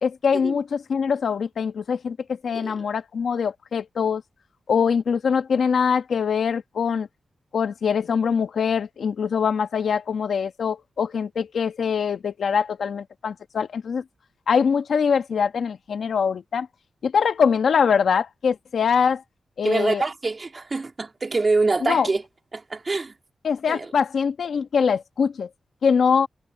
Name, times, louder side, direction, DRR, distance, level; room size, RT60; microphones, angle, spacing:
voice 1, 0.0-2.2 2.4-4.2 4.7-7.1 7.5-14.0 14.5-16.7 17.0-19.2 19.6-20.0 21.8-22.1 23.4-25.5 25.8-26.3, left 6 dB, 80° left, 1.2 m, -23 dB
voice 2, 19.6-22.2 22.5-23.1 23.7-23.9, right 3 dB, 40° right, 2.6 m, -25 dB
cardioid pair, 80°, 0 cm